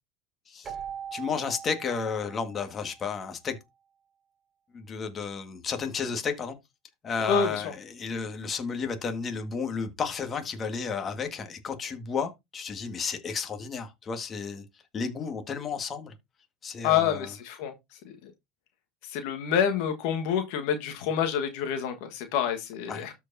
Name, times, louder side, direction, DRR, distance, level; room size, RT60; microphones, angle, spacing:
Keyboard (musical), 0.6-3.3, right 8 dB, 25° right, 2.9 m, -41 dB
voice 1, 1.1-3.6 4.7-6.6 7.0-14.6 14.9-16.1 16.6-17.3 22.9-23.1, left 5 dB, 30° left, 1.8 m, -32 dB
voice 2, 7.3-7.6 16.8-17.7 18.0-18.3 19.1-23.1, left 8 dB, 65° left, 1.5 m, -27 dB
13.0 x 4.7 x 2.7 m
hypercardioid pair, 90°, 0 cm